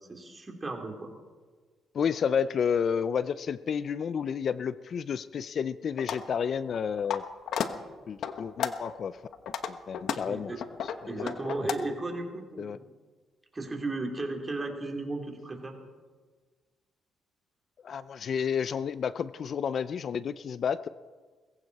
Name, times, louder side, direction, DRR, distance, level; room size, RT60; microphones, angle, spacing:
voice 1, 0.1-1.1 10.3-10.6 11.1-12.8 13.5-15.7, right 2 dB, 25° right, 2 dB, 3.3 m, -35 dB
voice 2, 1.9-7.2 8.1-9.2 9.7-10.5 11.0-11.3 12.6-12.8 17.8-20.9, left 7 dB, 55° left, 16 dB, 0.5 m, -31 dB
sound 1, 6.0-6.2 6.7-7.2 7.5-7.7 8.2-8.9 9.3-11.7, left 8 dB, 70° left, 1.0 m, -32 dB
21.0 x 15.5 x 4.2 m, 1.4 s
cardioid pair, 90°, 0 cm